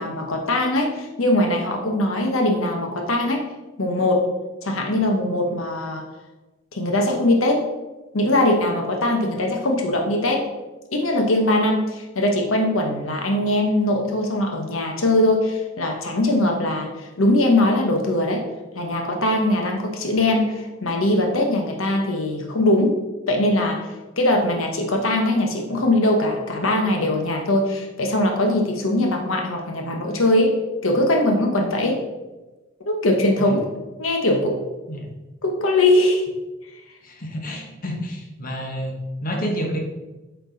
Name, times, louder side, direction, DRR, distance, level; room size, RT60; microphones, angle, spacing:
voice 1, 0.0-3.4 3.8-4.3 4.6-6.0 6.7-7.6 8.1-10.5 10.9-18.4 18.7-23.0 23.3-23.9 24.2-30.5 30.8-32.0 32.8-33.6 34.0-34.6 35.4-36.2, left 1 dB, 80° left, 2 dB, 1.0 m, -21 dB
voice 2, 37.0-39.8, equal, 45° left, 1 dB, 1.2 m, -29 dB
8.3 x 4.5 x 3.9 m, 1.1 s
head